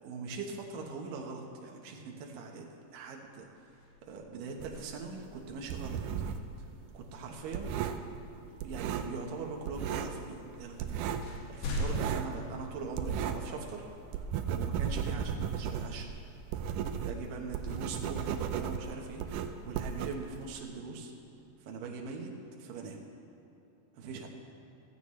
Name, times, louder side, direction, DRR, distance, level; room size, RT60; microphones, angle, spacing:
voice 1, 0.0-2.7 2.9-3.5 4.1-6.0 6.9-7.8 8.6-10.9 11.5-16.1 17.0-21.1 21.6-22.3 22.6-23.0 24.0-24.3, right 4 dB, 70° right, 1 dB, 2.8 m, -41 dB
sound 1, 3.3-5.4 7.5-7.7 8.5-9.2 10.1-10.2 10.6-13.5 14.0-14.1 16.7-18.9, left 2 dB, 90° left, 3.6 m, -42 dB
sound 2, 4.6-6.5 6.8-9.4 9.6-10.2 10.5-13.6 13.9-20.6, right 8 dB, 85° right, 1.9 m, -35 dB
15.5 x 15.0 x 3.2 m, 2.9 s
omnidirectional pair, 4.3 m